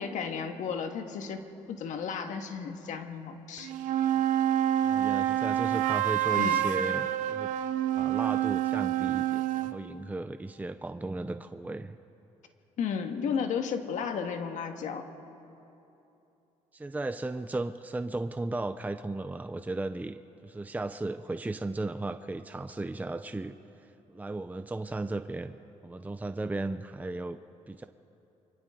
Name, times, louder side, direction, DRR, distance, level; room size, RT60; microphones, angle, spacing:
voice 1, 0.0-1.4 1.7-3.7 6.4-6.6 12.8-15.1, left 6 dB, 70° left, 6 dB, 1.7 m, -33 dB
sound 1, 3.6-9.8, right 11 dB, 80° right, 0.8 m, -27 dB
voice 2, 4.8-7.5 7.9-12.0 16.7-25.6 25.8-27.4 27.7-27.9, right 2 dB, 10° right, 9 dB, 0.6 m, -35 dB
28.5 x 24.5 x 3.8 m, 2.9 s
cardioid pair, 80°, 13 cm